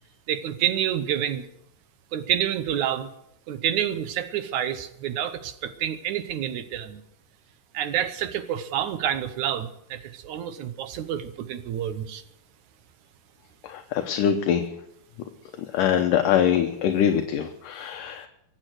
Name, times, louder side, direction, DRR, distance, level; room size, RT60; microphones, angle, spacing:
voice 1, 0.3-1.5 2.1-3.1 3.5-7.0 7.7-12.2, right 10 dB, 70° right, 11 dB, 2.0 m, -28 dB
voice 2, 13.6-14.6 15.7-18.3, left 9 dB, 70° left, 6 dB, 2.3 m, -23 dB
23.5 x 9.0 x 6.4 m, 0.79 s
omnidirectional pair, 4.2 m